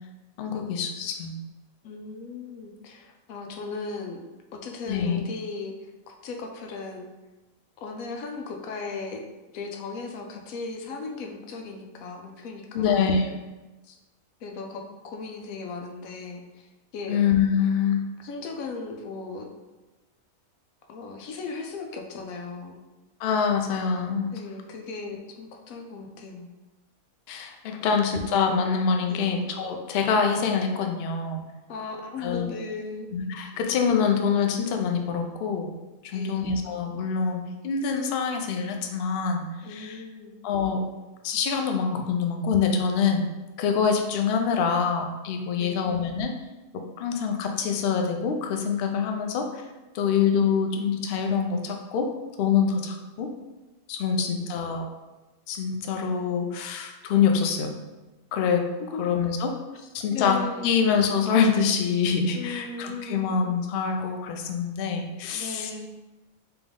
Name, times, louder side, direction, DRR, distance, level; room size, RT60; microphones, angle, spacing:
voice 1, 0.4-1.3 4.9-5.2 12.7-13.4 17.1-18.0 23.2-24.3 27.3-31.4 32.2-32.5 33.1-35.7 36.0-40.0 40.4-40.8 41.2-43.2 43.6-46.3 47.0-49.6 49.9-52.1 52.4-53.3 53.9-54.8 55.5-57.7 58.3-58.7 59.0-59.6 59.9-65.7, left 6 dB, 65° left, 4 dB, 0.6 m, -25 dB
voice 2, 1.8-4.2 4.5-5.7 6.1-7.1 7.8-9.2 9.5-13.1 13.8-14.0 14.4-17.2 18.2-19.5 20.9-22.8 24.3-26.5 27.8-28.0 29.1-29.4 31.7-33.1 33.5-33.6 36.1-36.5 39.6-40.3 45.6-45.9 54.0-54.5 58.9-59.0 60.1-60.8 62.3-63.3 65.3-65.9, left 4 dB, 90° left, 3 dB, 1.0 m, -37 dB
3.4 x 3.0 x 3.6 m, 1.1 s
omnidirectional pair, 1.4 m